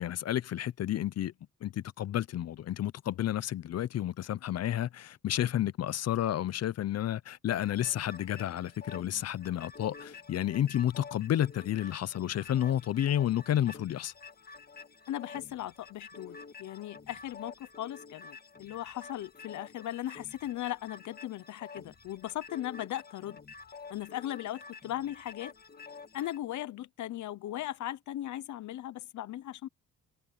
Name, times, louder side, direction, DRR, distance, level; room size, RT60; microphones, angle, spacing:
voice 1, 0.0-1.3 1.6-14.1, left 11 dB, 55° left, 0.7 m, -31 dB
sound 1, 7.5-26.4, left 4 dB, 30° left, 1.8 m, -50 dB
voice 2, 15.1-23.4 23.9-25.5 26.1-29.7, left 13 dB, 75° left, 1.0 m, -38 dB
open air
cardioid pair, 90°, 30 cm